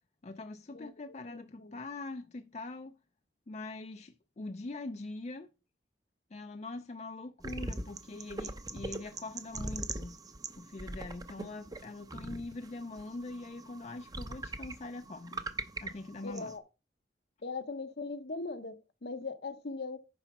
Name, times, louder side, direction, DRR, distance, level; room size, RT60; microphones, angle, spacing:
voice 1, 0.2-3.0 3.5-5.5 6.3-10.2 10.6-15.4 15.8-16.6, left 2 dB, 40° left, 0.5 m, -43 dB
voice 2, 1.3-1.8 16.2-16.6 17.4-20.0, left 3 dB, 65° left, 0.8 m, -40 dB
sound 1, 7.4-16.6, right 2 dB, 20° right, 0.7 m, -42 dB
9.8 x 4.0 x 5.9 m
head